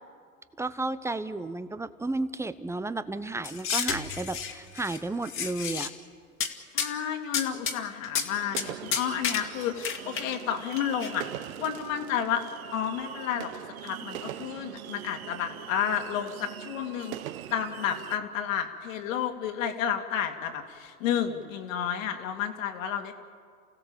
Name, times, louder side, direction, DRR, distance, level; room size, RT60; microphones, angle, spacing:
voice 1, 0.6-5.9, right 2 dB, 5° right, 13 dB, 0.8 m, -32 dB
sound 1, 3.4-5.0 5.2-5.9 6.4-6.5 6.8-6.9 7.3-7.8 8.0-8.3 8.6-8.7 8.9-10.4 10.7-11.1, left 7 dB, 30° left, 2.0 m, -31 dB
voice 2, 6.7-11.3 11.6-12.4 12.7-13.5 13.8-17.1 17.5-23.1, left 9 dB, 65° left, 5 dB, 2.6 m, -31 dB
sound 2, 8.3-18.2, right 12 dB, 70° right, 1.0 m, -42 dB
29.0 x 16.0 x 7.3 m, 2.1 s
hypercardioid pair, 95°, 43 cm